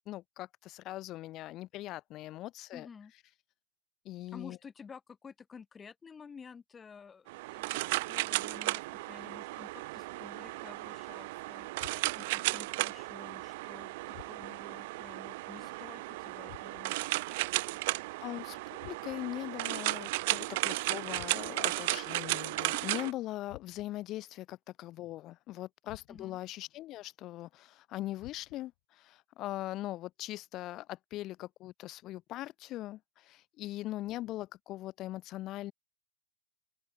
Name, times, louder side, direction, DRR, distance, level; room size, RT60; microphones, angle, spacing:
voice 1, 0.1-2.9 3.1-3.2 4.0-4.6 18.2-18.6 18.9-35.7, left 16 dB, 35° left, 0.6 m, -41 dB
voice 2, 2.7-3.1 4.3-11.7 12.1-17.6 26.1-26.4, left 6 dB, 20° left, 4.2 m, -52 dB
sound 1, 7.3-23.1, right 21 dB, 55° right, 0.5 m, -35 dB
sound 2, 11.8-12.4 14.1-14.8 16.5-17.1 18.8-19.4 21.1-21.8 23.5-24.1 25.9-26.5 28.2-28.8, left 19 dB, 55° left, 4.1 m, -55 dB
open air
hypercardioid pair, 105°, 0 cm